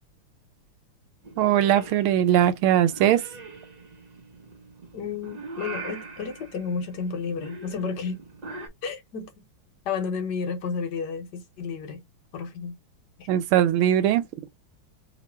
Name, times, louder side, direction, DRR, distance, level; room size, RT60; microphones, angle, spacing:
Purr / Meow, 1.2-8.7, right 3 dB, 65° right, 0.4 m, -42 dB
voice 1, 1.4-3.2 13.3-14.3, right 11 dB, 85° right, 1.5 m, -20 dB
voice 2, 4.9-8.2 8.8-9.4 9.8-12.0 12.3-12.8 13.2-13.3, left 5 dB, 60° left, 1.4 m, -32 dB
3.1 x 2.9 x 4.2 m
omnidirectional pair, 2.3 m